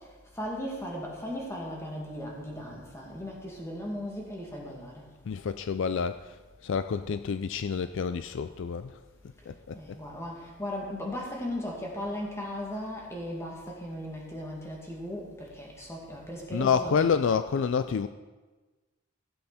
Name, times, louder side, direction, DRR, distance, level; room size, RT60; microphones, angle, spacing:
voice 1, 0.4-5.0 9.7-17.2, equal, 15° left, -2 dB, 2.3 m, -37 dB
voice 2, 5.3-6.4 6.6-9.0 9.5-9.8 16.5-18.1, left 6 dB, 60° left, 11 dB, 0.4 m, -28 dB
15.5 x 8.0 x 4.2 m, 1.3 s
head